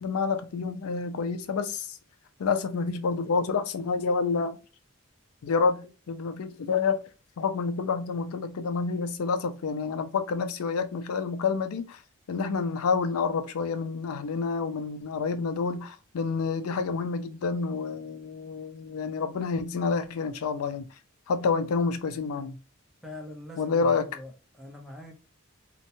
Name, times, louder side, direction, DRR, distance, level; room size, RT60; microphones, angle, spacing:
voice 1, 0.0-2.0 2.4-4.6 5.4-7.0 7.4-12.0 12.3-20.8 21.3-22.6 23.6-24.1, left 5 dB, 85° left, 0.4 m, -28 dB
voice 2, 23.0-25.1, left 1 dB, ahead, 0.6 m, -43 dB
2.8 x 2.1 x 2.6 m
head